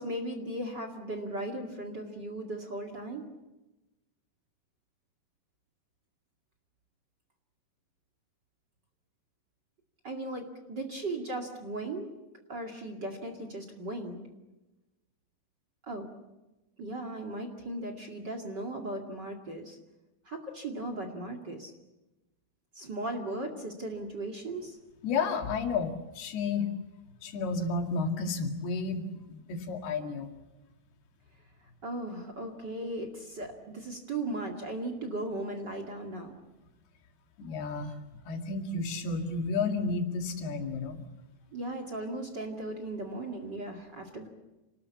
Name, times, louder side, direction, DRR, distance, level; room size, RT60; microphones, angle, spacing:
voice 1, 0.0-3.3 10.0-12.1 12.5-14.2 15.8-16.1 16.8-19.8 20.2-21.7 22.7-24.8 31.8-36.3 41.5-44.3, right 2 dB, 35° right, 5 dB, 2.3 m, -37 dB
voice 2, 25.0-26.7 27.2-30.3 37.4-37.9 38.3-41.0, left 4 dB, 85° left, 4 dB, 4.2 m, -32 dB
28.0 x 19.5 x 8.5 m, 1.0 s
omnidirectional pair, 4.4 m